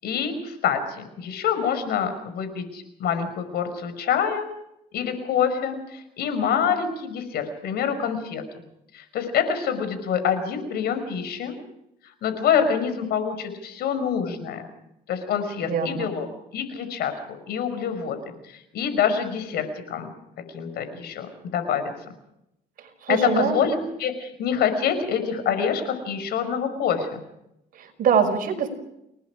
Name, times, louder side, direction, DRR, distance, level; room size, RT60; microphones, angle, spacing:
voice 1, 0.0-4.5 4.9-8.4 8.9-11.6 12.0-14.7 15.1-16.3 16.5-17.1 17.5-20.1 20.5-21.9 23.1-27.2, left 7 dB, 70° left, 9 dB, 5.7 m, -26 dB
voice 2, 15.7-16.1 22.8-23.7 27.8-28.7, right 6 dB, 55° right, 6 dB, 5.7 m, -24 dB
29.5 x 19.5 x 5.0 m, 0.81 s
cardioid pair, 110°, 17 cm